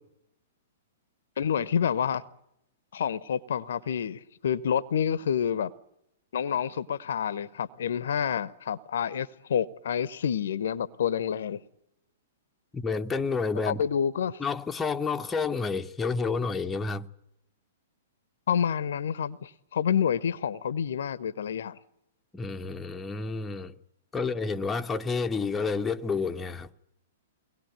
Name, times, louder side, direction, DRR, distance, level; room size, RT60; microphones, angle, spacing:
voice 1, 1.4-2.2 2.9-5.7 6.3-11.6 13.7-14.4 18.5-21.8, left 8 dB, 60° left, 0.8 m, -28 dB
voice 2, 12.7-13.8 14.4-17.1 22.3-23.7 24.1-26.7, left 4 dB, 10° left, 0.8 m, -30 dB
23.0 x 19.5 x 9.3 m
figure-of-eight pair, 110°, 0 cm